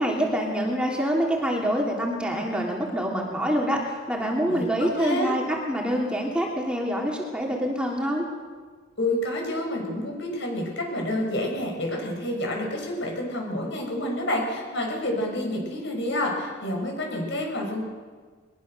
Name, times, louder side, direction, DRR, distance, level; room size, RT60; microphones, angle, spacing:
voice 1, 0.0-3.8 4.1-8.3, equal, 5° right, -1 dB, 2.9 m, -26 dB
voice 2, 4.5-5.3 9.0-17.8, left 1 dB, 60° left, 1 dB, 6.4 m, -29 dB
22.0 x 21.0 x 6.7 m, 1.5 s
head